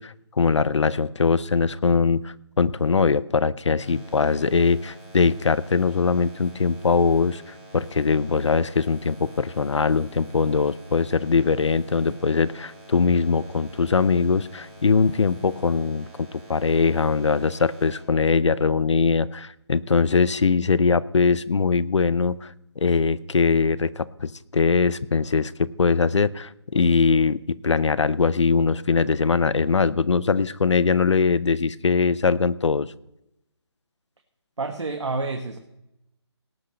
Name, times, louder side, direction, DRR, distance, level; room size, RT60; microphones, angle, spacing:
voice 1, 0.0-7.4 7.7-32.9, left 5 dB, 90° left, 18 dB, 0.7 m, -21 dB
sound 1, 3.8-18.0, right 1 dB, 5° left, 3.2 m, -47 dB
voice 2, 34.6-35.6, right 3 dB, 80° right, 5 dB, 1.5 m, -28 dB
18.0 x 6.3 x 6.5 m, 0.85 s
hypercardioid pair, 175°, 15 cm